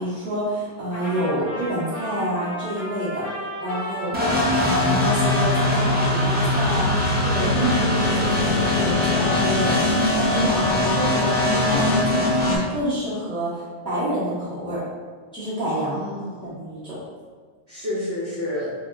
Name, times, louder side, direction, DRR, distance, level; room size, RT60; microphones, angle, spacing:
voice 1, 0.0-6.9 7.2-14.8 15.3-16.0 16.4-17.0, equal, 5° left, -10 dB, 0.8 m, -28 dB
Trumpet, 0.9-8.3, equal, 65° left, 1.0 m, -34 dB
sound 1, 4.1-12.6, left 2 dB, 15° right, 0.3 m, -21 dB
voice 2, 6.7-7.1 15.9-16.5 17.7-18.7, left 1 dB, 40° right, -10 dB, 0.8 m, -30 dB
2.9 x 2.1 x 3.6 m, 1.6 s
omnidirectional pair, 1.1 m